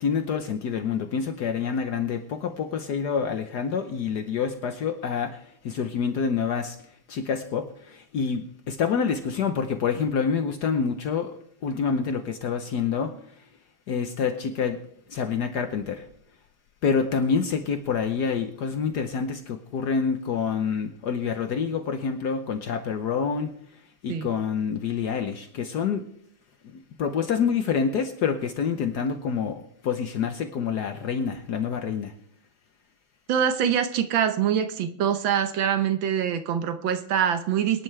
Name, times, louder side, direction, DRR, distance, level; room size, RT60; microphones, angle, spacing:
voice 1, 0.0-6.8 7.1-13.4 13.9-14.8 15.1-16.1 16.8-23.5 24.0-26.0 26.6-32.1, left 6 dB, 65° left, 8 dB, 1.4 m, -27 dB
voice 2, 33.3-37.8, right 8 dB, 80° right, 10 dB, 1.7 m, -24 dB
24.0 x 11.0 x 3.3 m, 0.66 s
omnidirectional pair, 2.1 m